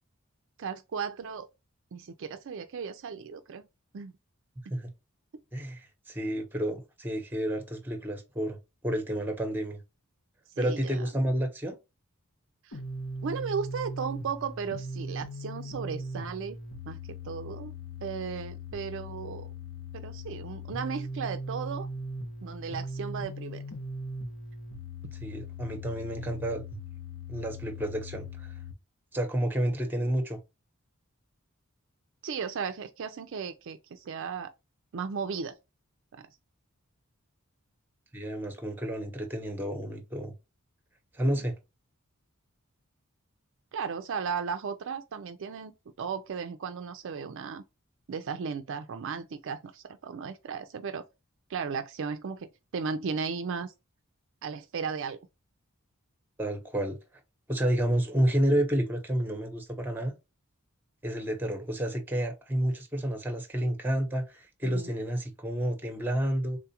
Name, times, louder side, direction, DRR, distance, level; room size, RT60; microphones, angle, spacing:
voice 1, 0.6-1.5 1.9-3.6 3.9-4.1 4.7-4.8 10.6-11.0 12.6-12.8 13.2-16.6 16.9-17.7 18.0-19.5 19.9-21.9 22.4-23.6 32.2-34.5 34.9-35.6 36.1-36.2 41.3-41.4 43.7-45.7 46.0-47.6 48.1-51.1 51.5-53.7 54.4-55.2 64.6-64.9, right 6 dB, 60° right, 0.4 m, -35 dB
voice 2, 5.5-8.6 8.8-9.8 10.6-11.8 25.2-26.6 27.3-28.5 29.1-30.4 38.1-40.3 41.1-41.5 56.4-57.0 57.5-60.1 61.0-66.6, right 1 dB, 10° right, 0.9 m, -30 dB
sound 1, 12.7-28.7, equal, 70° left, 1.0 m, -39 dB
3.7 x 2.4 x 2.8 m
head